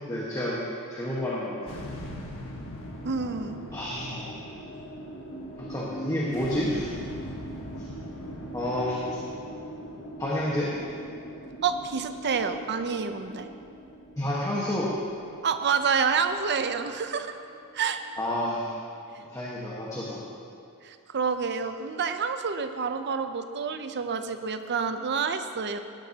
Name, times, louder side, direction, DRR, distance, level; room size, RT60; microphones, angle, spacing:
voice 1, 0.1-0.6 0.9-1.8 3.7-4.3 5.6-6.9 8.5-9.4 10.2-10.7 14.2-15.0 18.2-18.7 19.3-20.2, left 1 dB, 15° left, -6 dB, 1.4 m, -30 dB
sound 1, 1.7-18.1, equal, 60° left, 1.5 m, -41 dB
voice 2, 3.0-3.7 11.6-13.5 15.4-17.3 17.7-18.0 20.8-25.8, right 5 dB, 50° right, 8 dB, 0.7 m, -28 dB
17.5 x 11.5 x 2.9 m, 2.4 s
head